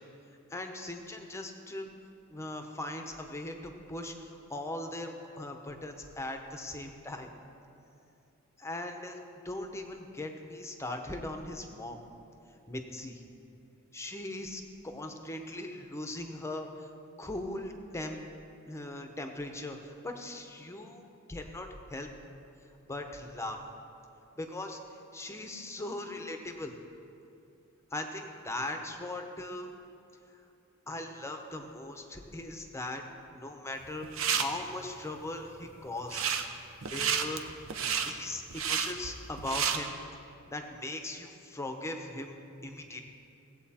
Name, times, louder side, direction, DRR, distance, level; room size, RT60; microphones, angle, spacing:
voice 1, 0.5-1.9 2.3-5.1 5.4-7.3 8.6-9.2 9.4-12.0 12.7-13.2 13.9-16.7 17.2-18.2 18.7-21.0 21.3-22.1 22.9-23.6 24.4-24.8 25.1-26.7 27.9-29.7 30.9-33.0 33.4-34.1 34.3-36.3 36.9-37.5 38.0-39.9 40.5-42.3 42.6-43.0, left 1 dB, 15° left, 4 dB, 0.8 m, -39 dB
sound 1, 33.8-34.4 36.0-36.5 36.8-39.8, right 7 dB, 65° right, 0.7 m, -30 dB
17.5 x 8.1 x 4.3 m, 2.7 s
head